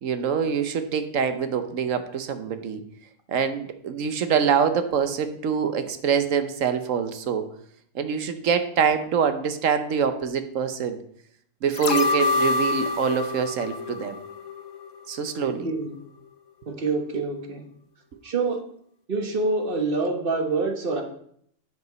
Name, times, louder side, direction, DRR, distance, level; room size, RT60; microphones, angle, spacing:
voice 1, 0.0-2.8 3.3-7.4 7.9-11.0 11.6-14.2 15.1-15.7 17.1-17.2, right 7 dB, 85° right, 9 dB, 1.3 m, -25 dB
sound 1, 11.7-14.9 15.2-15.3, left 3 dB, 80° left, 1.1 m, -26 dB
voice 2, 15.5-16.0 16.7-17.6 18.2-18.6 19.1-21.0, right 3 dB, 45° right, 4 dB, 1.5 m, -26 dB
9.5 x 5.2 x 5.1 m, 0.66 s
omnidirectional pair, 1.3 m